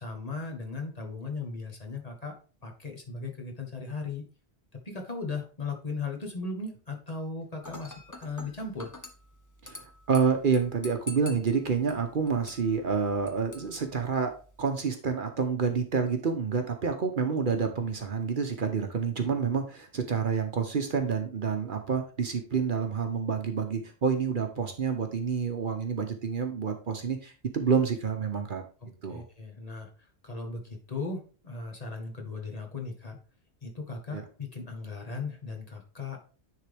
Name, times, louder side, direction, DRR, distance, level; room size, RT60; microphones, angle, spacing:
voice 1, 0.0-2.4 2.6-4.2 4.8-8.9 29.1-33.2 33.6-36.2, left 3 dB, 35° left, 2 dB, 1.3 m, -37 dB
Dishes pots and pans / Glass, 7.6-14.6, left 1 dB, 20° left, 0.8 m, -47 dB
voice 2, 9.6-14.3 14.6-28.6 29.0-29.2 34.1-34.2, right 5 dB, 55° right, 6 dB, 0.9 m, -28 dB
9.9 x 3.8 x 3.4 m, 0.38 s
omnidirectional pair, 1.1 m